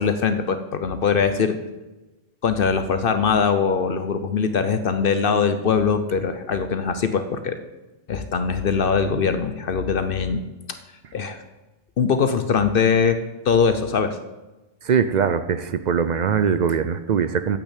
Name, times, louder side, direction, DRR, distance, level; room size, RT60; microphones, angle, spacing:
voice 1, 0.0-1.5 2.4-7.6 8.1-10.4 11.1-11.4 12.0-13.2 13.4-14.2, left 6 dB, 55° left, 10 dB, 0.7 m, -21 dB
voice 2, 14.8-17.6, right 7 dB, 60° right, 12 dB, 0.5 m, -21 dB
8.8 x 6.2 x 8.3 m, 1.1 s
omnidirectional pair, 1.3 m